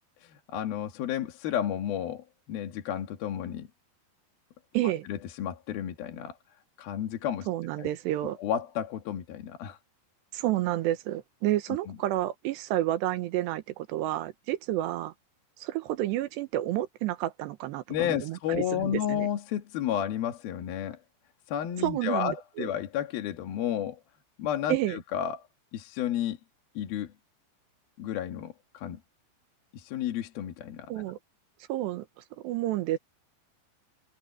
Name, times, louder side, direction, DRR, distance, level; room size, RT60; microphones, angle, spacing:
voice 1, 0.2-3.7 5.1-6.4 6.8-7.5 7.8-7.9 8.2-9.8 17.9-21.0 21.5-24.0 24.4-25.4 25.7-26.4 26.8-27.1 28.0-29.0 29.7-30.9, left 10 dB, 65° left, 3.3 m, -32 dB
voice 2, 4.7-5.1 7.5-8.4 10.3-15.1 15.6-19.3 21.8-22.7 24.7-25.0 30.9-31.2 31.7-32.1 32.4-33.0, right 14 dB, 85° right, 3.2 m, -30 dB
omnidirectional pair, 4.9 m